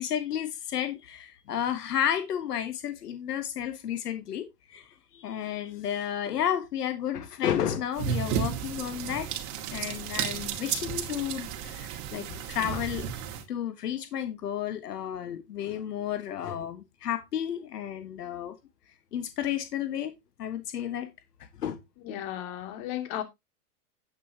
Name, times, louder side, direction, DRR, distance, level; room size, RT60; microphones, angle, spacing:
voice 1, 0.0-9.3 9.7-13.1 13.5-18.5 19.1-20.1 20.4-21.1 21.6-21.8, left 10 dB, 90° left, 1.6 m, -32 dB
sound 1, 7.9-13.4, right 8 dB, 40° right, 2.2 m, -33 dB
voice 2, 22.0-23.2, left 11 dB, 50° left, 2.8 m, -34 dB
9.7 x 8.9 x 2.9 m
hypercardioid pair, 135°, 45 cm